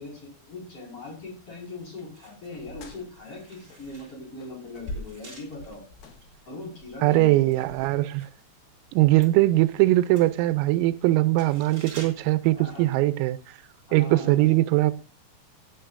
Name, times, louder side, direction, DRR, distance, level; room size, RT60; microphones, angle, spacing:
voice 1, 0.0-5.8 6.5-7.5 12.5-12.9 13.9-14.6, left 3 dB, 30° left, 5.5 m, -40 dB
sound 1, 1.9-8.5 8.8-13.4 13.7-13.9, right 3 dB, 25° right, 3.3 m, -50 dB
sound 2, 2.5-4.1 4.4-8.4, left 1 dB, 65° left, 2.4 m, -43 dB
voice 2, 7.0-8.3 8.9-13.6 13.9-14.9, right 17 dB, 85° right, 3.3 m, -21 dB
16.0 x 9.7 x 2.5 m
omnidirectional pair, 6.0 m